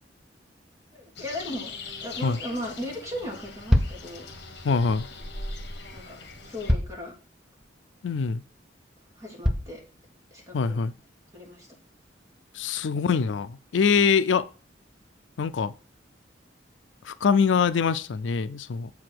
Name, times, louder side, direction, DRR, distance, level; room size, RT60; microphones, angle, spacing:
voice 1, 0.9-1.7 2.0-4.3 5.9-6.2 6.4-7.1 9.2-9.8 10.3-10.8 11.3-11.7, left 1 dB, 20° right, 3.0 m, -36 dB
sound 1, 1.2-6.7, left 3 dB, 65° left, 1.8 m, -41 dB
sound 2, 3.7-4.0 5.6-5.7 6.7-7.0 7.6-7.7 8.3-8.4 9.4-9.8, left 1 dB, ahead, 0.6 m, -24 dB
voice 2, 4.6-5.1 8.0-8.4 10.5-10.9 12.5-14.5 15.4-15.7 17.0-18.9, left 5 dB, 80° left, 0.4 m, -24 dB
7.5 x 4.8 x 6.0 m
head